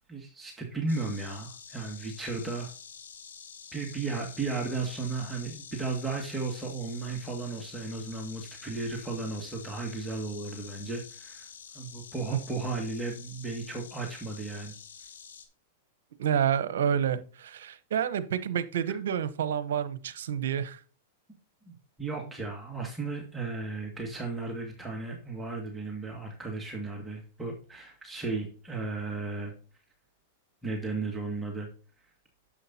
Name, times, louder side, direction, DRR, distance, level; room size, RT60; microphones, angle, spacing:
voice 1, 0.1-2.7 3.7-11.5 11.7-14.7 21.7-29.5 30.6-31.7, right 3 dB, 10° right, 2.0 m, -35 dB
Insect, 0.9-15.5, left 6 dB, 90° left, 1.6 m, -48 dB
voice 2, 16.2-20.8, right 9 dB, 75° right, 0.9 m, -29 dB
10.0 x 7.4 x 2.8 m
hypercardioid pair, 120°, 0 cm